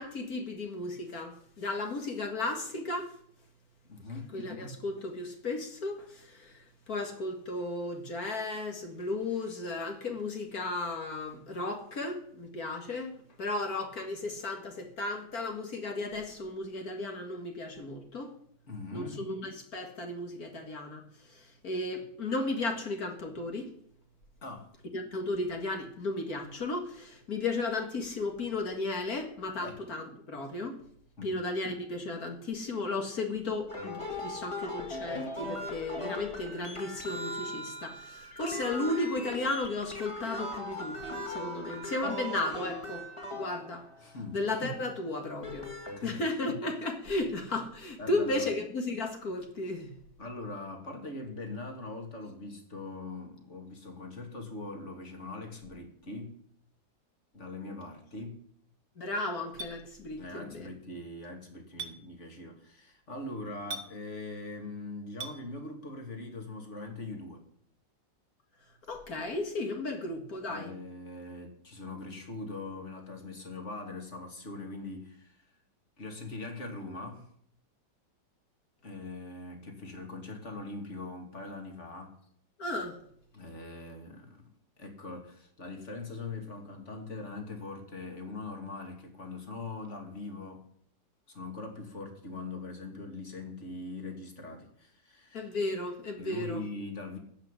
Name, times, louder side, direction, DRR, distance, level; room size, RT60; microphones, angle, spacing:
voice 1, 0.0-3.1 4.3-13.1 13.4-18.3 18.9-23.7 24.9-30.8 31.2-43.1 43.3-43.9 44.3-45.7 46.0-50.0 59.0-60.7 68.9-70.7 82.6-83.0 95.3-96.6, left 2 dB, 55° left, 4 dB, 2.3 m, -34 dB
voice 2, 3.9-4.3 18.7-19.2 24.4-24.7 29.6-29.8 31.2-31.4 44.0-44.4 46.0-46.2 48.0-48.5 50.2-56.3 57.3-58.3 60.2-67.4 70.5-75.4 76.0-77.3 78.8-82.2 83.3-84.4 84.8-90.7 91.3-95.5 96.2-97.2, left 2 dB, 40° left, 3 dB, 2.8 m, -41 dB
sound 1, 33.7-44.2 45.2-46.0, left 1 dB, 15° left, 2.1 m, -39 dB
Chink clink, 59.6-59.7 61.8-61.9 63.7-63.9 65.2-65.4, right 2 dB, 60° right, 2.2 m, -38 dB
15.0 x 6.1 x 10.0 m, 0.63 s
omnidirectional pair, 1.9 m